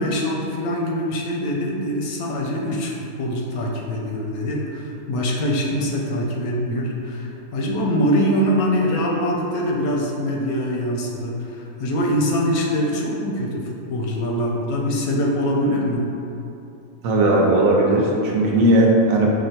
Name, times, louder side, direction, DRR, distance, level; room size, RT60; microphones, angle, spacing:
voice 1, 0.0-16.1, equal, 85° left, -1 dB, 1.1 m, -23 dB
voice 2, 17.0-19.3, right 1 dB, 70° right, -2 dB, 1.0 m, -17 dB
5.2 x 2.1 x 4.2 m, 2.8 s
omnidirectional pair, 1.5 m